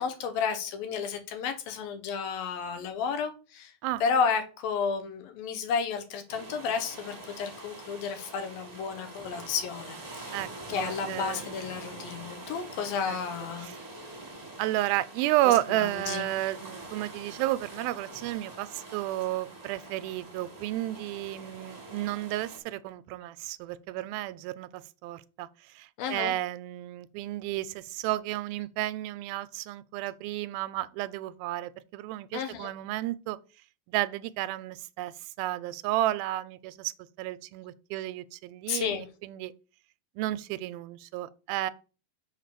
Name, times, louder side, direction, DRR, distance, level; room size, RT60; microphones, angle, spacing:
voice 1, 0.0-3.7 4.0-10.4 10.7-13.7 15.5-16.2 26.0-26.3 32.3-32.7 38.7-39.1, left 6 dB, 80° left, 3.0 m, -32 dB
sound 1, 6.3-22.6, right 2 dB, 20° right, 1.1 m, -45 dB
voice 2, 10.7-11.6 13.1-13.2 13.6-13.8 14.6-25.5 25.8-33.4 33.9-35.1 35.4-36.9 37.2-39.5 40.2-41.7, right 15 dB, 85° right, 2.4 m, -32 dB
6.5 x 4.7 x 6.6 m
omnidirectional pair, 4.2 m